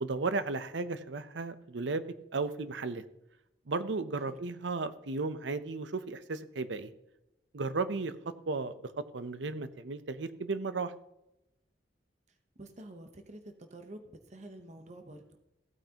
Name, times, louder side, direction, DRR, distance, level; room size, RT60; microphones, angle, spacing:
voice 1, 0.0-2.1 2.3-3.0 3.7-6.9 7.5-8.1 8.5-10.9, right 3 dB, 85° right, 13 dB, 0.7 m, -34 dB
voice 2, 12.6-15.2, right 1 dB, 40° right, 6 dB, 0.9 m, -49 dB
15.5 x 8.9 x 2.9 m, 0.88 s
head